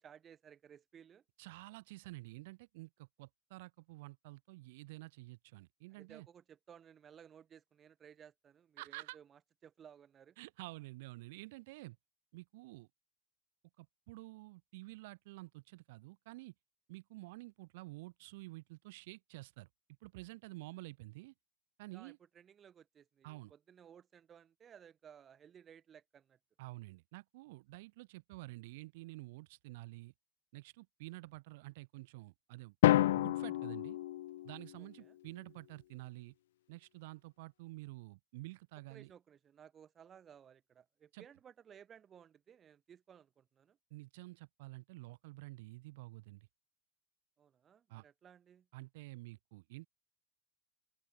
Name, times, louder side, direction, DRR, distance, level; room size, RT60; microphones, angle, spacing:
voice 1, 0.0-1.2 5.9-10.4 21.9-26.4 34.8-35.2 38.9-43.8 47.4-48.7, right 8 dB, 30° right, 6.3 m, -59 dB
voice 2, 1.4-6.3 8.8-9.2 10.4-12.0 12.3-12.9 13.8-16.5 16.9-19.7 20.0-21.3 21.8-22.2 23.2-23.5 26.6-30.1 30.5-32.7 33.1-34.0 34.4-36.3 36.7-39.1 41.1-41.2 43.9-46.5 47.9-48.0 48.7-49.9, right 21 dB, 75° right, 3.0 m, -50 dB
Drum, 32.8-34.8, left 14 dB, 90° left, 0.7 m, -30 dB
open air
supercardioid pair, 120°, 0 cm